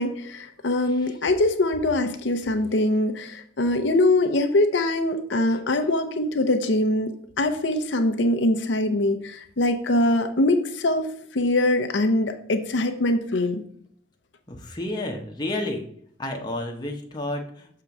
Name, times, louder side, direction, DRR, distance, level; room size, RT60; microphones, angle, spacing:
voice 1, 0.0-7.1 7.4-13.6, left 1 dB, 75° left, 6 dB, 0.7 m, -23 dB
voice 2, 0.8-1.2 14.5-15.8 16.2-17.8, left 1 dB, 20° left, 1 dB, 0.9 m, -31 dB
6.8 x 3.7 x 5.9 m, 0.65 s
head